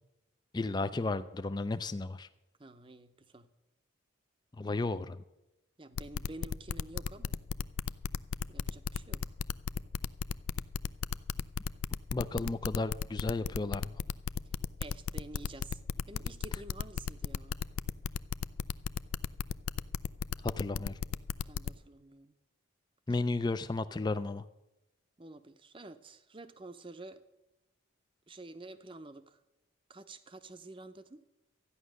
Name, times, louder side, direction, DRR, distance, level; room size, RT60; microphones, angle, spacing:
voice 1, 0.5-2.3 4.6-5.2 12.1-13.9 20.4-20.9 23.1-24.4, left 3 dB, 20° left, 12 dB, 0.4 m, -33 dB
voice 2, 2.6-3.5 5.8-7.4 8.5-9.2 14.8-15.8 16.1-17.6 21.4-22.3 25.2-27.2 28.3-29.4 29.9-31.2, right 2 dB, 25° right, 11 dB, 0.7 m, -49 dB
sound 1, 6.0-21.7, left 7 dB, 85° left, 0.4 m, -34 dB
13.0 x 9.9 x 6.4 m, 0.95 s
head